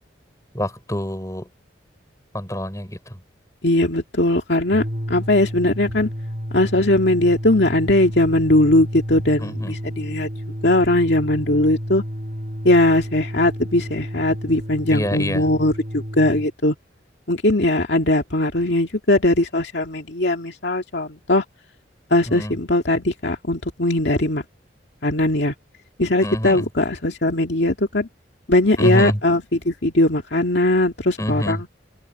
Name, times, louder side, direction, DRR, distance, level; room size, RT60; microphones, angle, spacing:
voice 1, 0.5-1.5 2.3-3.0 9.4-9.7 14.9-15.4 22.3-22.5 26.2-26.6 28.8-29.2 31.2-31.6, equal, 15° left, 5.8 m, -25 dB
voice 2, 3.6-6.1 6.5-10.3 10.6-12.0 12.6-16.7 17.3-21.4 22.1-24.4 25.0-25.5 26.0-28.1 28.5-31.7, left 1 dB, 65° left, 2.3 m, -19 dB
sound 1, 4.7-16.5, equal, 45° right, 2.7 m, -31 dB
head